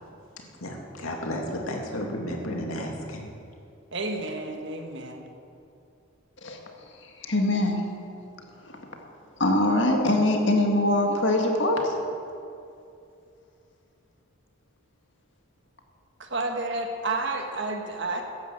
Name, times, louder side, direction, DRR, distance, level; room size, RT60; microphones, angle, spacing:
voice 1, 0.6-3.3, left 1 dB, 85° left, 1 dB, 2.5 m, -32 dB
voice 2, 3.9-5.3 16.2-18.2, right 2 dB, 55° right, 3 dB, 1.6 m, -30 dB
voice 3, 7.0-7.8 8.6-8.8 9.4-11.9, left 1 dB, 60° left, 2 dB, 1.9 m, -23 dB
13.5 x 10.5 x 7.9 m, 2.5 s
head